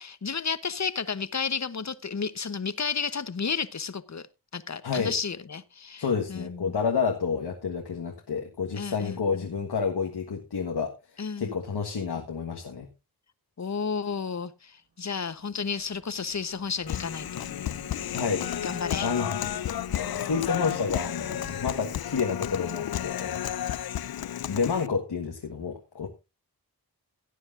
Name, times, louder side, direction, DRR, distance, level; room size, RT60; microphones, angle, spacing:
voice 1, 0.0-4.3 4.5-6.8 8.7-9.5 11.2-11.5 13.6-17.5 18.6-19.1, left 5 dB, 45° left, 15 dB, 1.0 m, -32 dB
voice 2, 4.8-5.1 6.0-10.9 11.4-12.9 18.1-18.5 19.0-19.5 20.2-23.5 24.4-26.1, left 5 dB, 90° left, 2 dB, 1.6 m, -29 dB
sound 1, 15.2-23.8, right 3 dB, 45° right, 5.5 m, -50 dB
Human voice, 16.9-24.9, left 11 dB, 65° left, 0.5 m, -32 dB
17.0 x 9.7 x 2.6 m, 0.25 s
wide cardioid pair, 60°, 39 cm